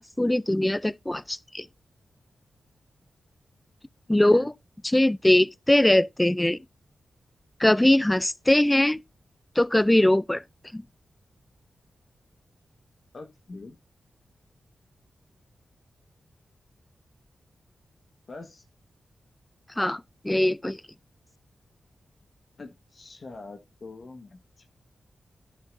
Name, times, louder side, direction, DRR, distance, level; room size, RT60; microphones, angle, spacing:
voice 1, 0.2-1.7 4.1-4.5 4.9-6.6 7.6-9.0 9.6-10.4 10.7-10.8 19.8-20.8, left 1 dB, 10° left, 0.4 m, -21 dB
voice 2, 13.1-13.8 18.3-18.6 22.6-24.7, left 3 dB, 55° left, 1.3 m, -43 dB
11.0 x 6.7 x 2.6 m
cardioid pair, 70°, 0 cm